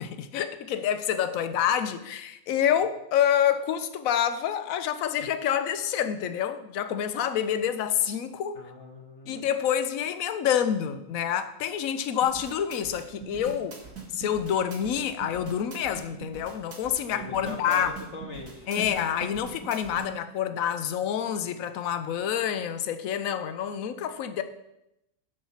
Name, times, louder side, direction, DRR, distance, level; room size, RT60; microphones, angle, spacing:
voice 1, 0.0-8.6 9.3-13.8 14.1-17.9 18.7-24.4, left 9 dB, 75° left, 10 dB, 1.1 m, -27 dB
voice 2, 8.5-9.5 17.1-19.0, left 2 dB, 55° left, 1 dB, 1.5 m, -39 dB
sound 1, 12.2-20.1, right 5 dB, 75° right, 2.3 m, -42 dB
12.0 x 4.3 x 5.7 m, 0.85 s
omnidirectional pair, 1.5 m